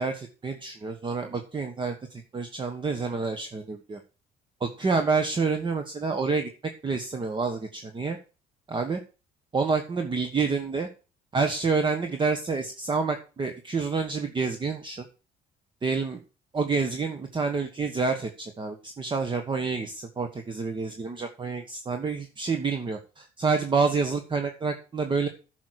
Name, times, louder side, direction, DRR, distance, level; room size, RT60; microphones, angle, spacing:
voice 1, 0.0-4.0 4.6-6.5 6.8-8.2 8.7-9.0 9.5-10.9 11.3-15.0 15.8-16.2 16.5-25.3, right 4 dB, 30° right, 6 dB, 1.4 m, -28 dB
10.5 x 6.4 x 6.5 m, 0.34 s
cardioid pair, 110°, 17 cm